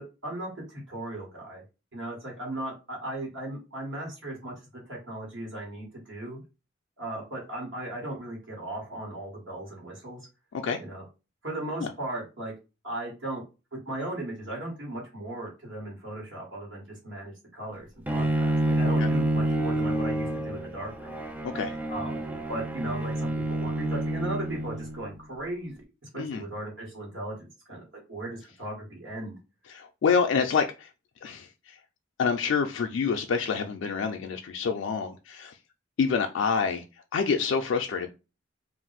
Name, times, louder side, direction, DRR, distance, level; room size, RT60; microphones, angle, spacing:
voice 1, 0.0-1.6 1.9-4.5 4.9-6.4 7.0-10.2 10.8-11.0 11.4-12.5 12.8-13.4 13.8-21.1 21.9-22.2 22.5-25.7 26.1-27.3 27.7-29.4, right 1 dB, 75° right, 1.4 m, -37 dB
Bowed string instrument, 18.1-25.1, right 1 dB, 10° right, 0.3 m, -28 dB
voice 2, 29.7-30.9 31.2-31.8 32.2-35.6 36.0-36.8 37.1-38.1, left 5 dB, 70° left, 0.3 m, -27 dB
2.5 x 2.1 x 3.9 m
head